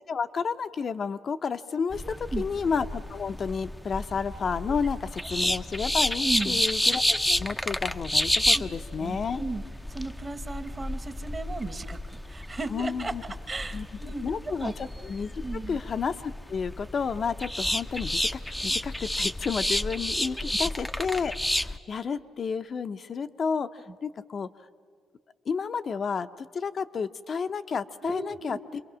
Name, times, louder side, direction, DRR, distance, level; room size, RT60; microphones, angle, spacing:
voice 1, 0.0-9.4 12.7-13.2 13.7-24.5 25.5-28.8, left 5 dB, 45° left, 9 dB, 0.6 m, -31 dB
sound 1, 1.9-21.8, left 1 dB, 5° left, 0.6 m, -30 dB
voice 2, 2.0-2.5 6.2-6.6 8.5-8.6 9.0-9.6 9.9-13.1 13.5-14.7 15.4-15.8 20.2-20.6 28.0-28.6, right 3 dB, 30° right, 10 dB, 1.2 m, -35 dB
27.5 x 22.5 x 6.2 m, 2.1 s
cardioid pair, 90°, 0 cm